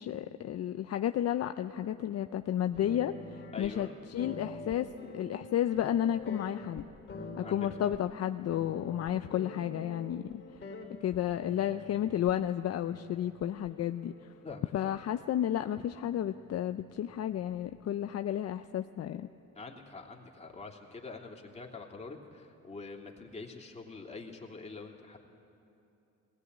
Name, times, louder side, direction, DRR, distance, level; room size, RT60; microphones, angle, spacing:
voice 1, 0.0-4.9 5.1-6.8 7.4-10.4 11.0-14.1 14.7-19.3, left 11 dB, 55° left, 9 dB, 0.6 m, -32 dB
sound 1, 2.7-3.7 4.2-8.2 8.5-12.3 12.8-14.5 14.9-15.6 15.9-18.2, left 2 dB, 40° left, 3.2 m, -47 dB
voice 2, 3.5-3.9 7.4-7.9 14.4-15.0 19.5-25.2, left 4 dB, 20° left, -1 dB, 2.9 m, -45 dB
19.5 x 18.0 x 9.6 m, 2.8 s
cardioid pair, 90°, 30 cm